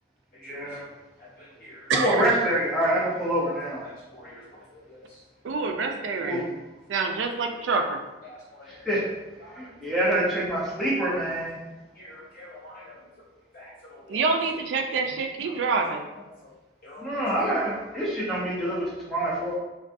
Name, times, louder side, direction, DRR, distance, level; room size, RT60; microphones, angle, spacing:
voice 1, 0.4-0.8 1.9-3.8 6.2-6.5 8.9-9.0 9.6-11.6 17.0-19.6, right 1 dB, ahead, -7 dB, 0.6 m, -26 dB
voice 2, 1.2-1.9 3.8-5.2 7.1-7.2 7.7-7.8 8.2-8.8 9.4-9.7 11.9-13.0 13.5-14.4 15.4-15.5 16.4-16.5 16.8-17.1 17.3-17.8, left 1 dB, 50° left, -8 dB, 1.1 m, -47 dB
voice 3, 1.9-2.3 5.4-6.5 6.9-8.0 14.1-16.1, right 4 dB, 75° right, 4 dB, 0.3 m, -26 dB
2.5 x 2.2 x 2.4 m, 1.1 s
head